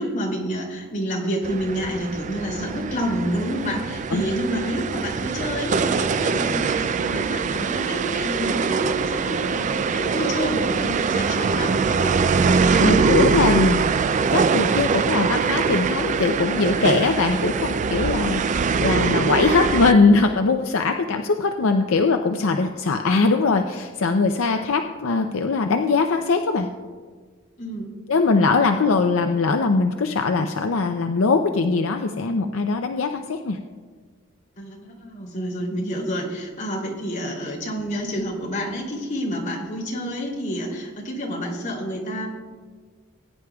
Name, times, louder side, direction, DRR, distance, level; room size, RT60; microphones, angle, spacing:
voice 1, 0.0-12.2 12.7-13.5 27.6-27.9 34.6-42.3, equal, 40° left, -3 dB, 2.8 m, -29 dB
sound 1, 1.4-19.9, right 5 dB, 35° right, 0.3 m, -23 dB
voice 2, 12.8-13.8 14.3-26.7 28.1-33.6, left 4 dB, 70° left, 5 dB, 0.5 m, -21 dB
19.5 x 10.0 x 2.3 m, 1.5 s
head